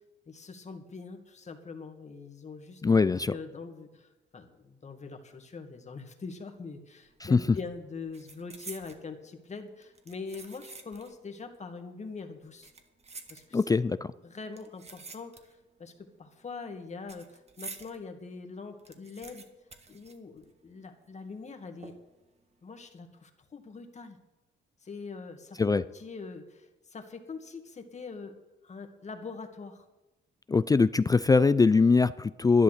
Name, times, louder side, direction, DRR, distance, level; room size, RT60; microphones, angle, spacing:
voice 1, 0.3-12.7 13.3-13.6 14.2-19.5 19.9-21.9 22.6-24.2 24.8-28.3 28.6-29.9, left 4 dB, 35° left, 5 dB, 2.0 m, -43 dB
voice 2, 2.8-3.3 7.2-7.4 13.5-14.1 25.6-25.8 30.5-32.6, left 4 dB, 20° left, 15 dB, 0.4 m, -22 dB
sound 1, 7.1-7.4 7.6-9.1 9.8-11.2 11.5-11.6 12.4-13.9 14.5-15.7 16.0-18.0 18.4-18.5 18.7-20.8 21.0-21.1 21.8-22.3 22.7-22.9, right 4 dB, 30° right, 1.6 m, -48 dB
11.5 x 11.0 x 6.6 m, 1.0 s
cardioid pair, 90°, 20 cm